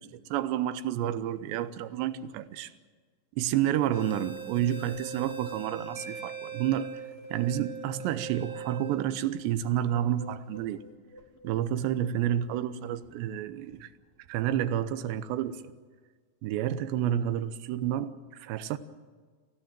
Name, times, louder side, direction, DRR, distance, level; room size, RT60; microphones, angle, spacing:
voice 1, 0.0-2.7 3.4-6.9 7.3-10.8 11.4-13.9 14.3-15.6 16.4-18.8, right 11 dB, 85° right, 3.1 m, -30 dB
sound 1, 3.9-13.1 13.7-13.8 14.3-14.6, right 6 dB, 45° left, 1.3 m, -42 dB
Marimba xylophone, 6.0-7.7, right 2 dB, 40° right, 2.2 m, -49 dB
29.0 x 16.0 x 7.6 m
omnidirectional pair, 5.0 m